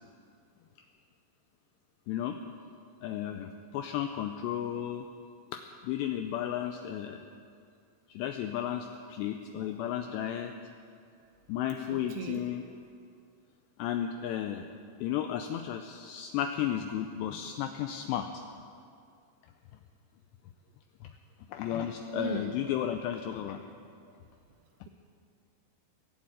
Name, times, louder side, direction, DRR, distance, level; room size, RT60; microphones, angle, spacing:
voice 1, 2.1-2.4 3.0-5.0 5.5-7.2 8.1-10.5 11.5-12.6 13.8-14.7 15.0-18.4 21.5-23.6, left 10 dB, 85° left, 6 dB, 2.5 m, -33 dB
voice 2, 11.9-12.5 22.1-22.6 23.2-23.3 23.8-24.0, right 6 dB, 80° right, 5 dB, 2.3 m, -39 dB
20.5 x 7.7 x 9.0 m, 2.4 s
omnidirectional pair, 5.5 m